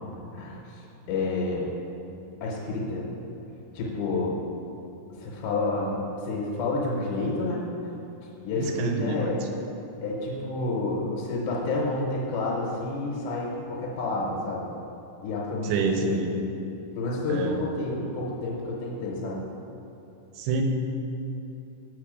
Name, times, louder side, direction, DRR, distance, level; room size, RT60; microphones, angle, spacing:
voice 1, 0.3-0.8 1.1-1.7 2.4-3.0 3.7-4.4 5.2-7.6 8.4-9.4 10.0-14.7 15.2-16.2 17.0-19.4, left 2 dB, 80° left, -3 dB, 2.7 m, -29 dB
voice 2, 8.6-9.3 15.6-16.3 17.3-17.6 20.4-20.6, right 4 dB, 85° right, 3 dB, 2.7 m, -27 dB
6.8 x 5.1 x 4.9 m, 2.9 s
omnidirectional pair, 4.5 m